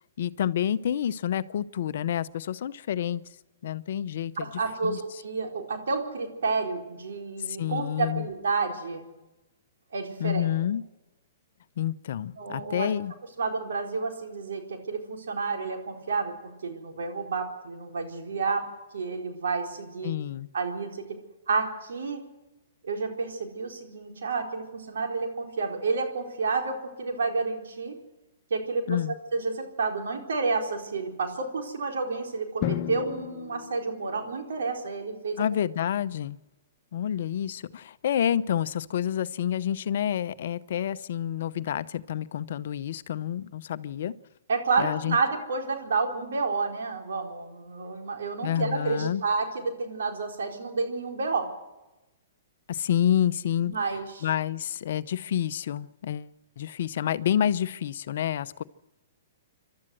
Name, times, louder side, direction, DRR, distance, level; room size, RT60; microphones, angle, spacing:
voice 1, 0.2-3.2 3.6-4.5 4.8-5.0 7.5-8.3 10.2-10.8 11.8-13.1 20.0-20.5 28.9-29.1 35.4-36.4 36.9-44.1 44.8-45.2 48.4-49.2 52.7-53.7 54.2-58.6, left 10 dB, 65° left, 14 dB, 0.7 m, -28 dB
voice 2, 4.4-9.1 9.9-10.5 12.4-12.9 13.4-16.3 16.6-18.7 18.9-20.1 20.5-21.2 21.5-22.2 22.8-27.9 28.5-29.0 29.3-35.4 44.5-51.5 53.7-54.3, right 4 dB, 75° right, 2 dB, 4.2 m, -30 dB
Drum, 32.6-34.5, left 13 dB, 40° left, 1.2 m, -34 dB
27.5 x 12.5 x 7.8 m, 1.0 s
hypercardioid pair, 130°, 0 cm